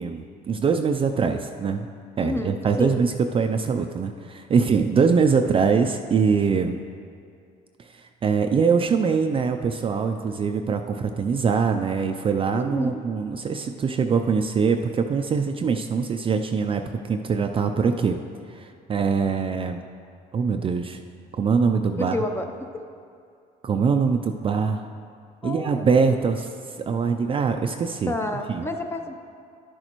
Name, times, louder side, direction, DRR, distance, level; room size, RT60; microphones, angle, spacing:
voice 1, 0.0-1.9 2.2-6.8 7.9-18.2 18.5-19.8 20.3-21.0 21.3-22.2 23.6-24.8 25.4-26.5 26.9-28.1 28.5-28.7, right 5 dB, 30° right, 5 dB, 0.4 m, -23 dB
voice 2, 2.2-3.0 12.5-13.0 22.1-22.4 25.4-26.2 28.1-29.1, left 1 dB, 15° left, 5 dB, 0.6 m, -29 dB
11.5 x 6.5 x 3.0 m, 2.4 s
cardioid pair, 110°, 17 cm